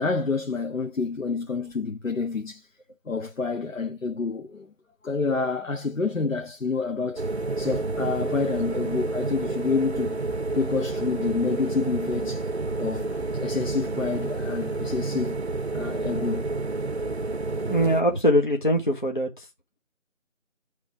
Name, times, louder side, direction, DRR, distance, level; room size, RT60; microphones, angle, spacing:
voice 1, 0.0-2.7 3.0-4.7 5.0-10.2 10.5-12.5 12.8-15.4 15.7-16.6, left 4 dB, 80° left, 1.0 m, -28 dB
sound 1, 7.2-18.0, right 3 dB, 55° right, 0.6 m, -29 dB
voice 2, 17.7-19.5, equal, 40° left, 0.9 m, -22 dB
6.9 x 3.2 x 4.5 m
figure-of-eight pair, 175°, 39 cm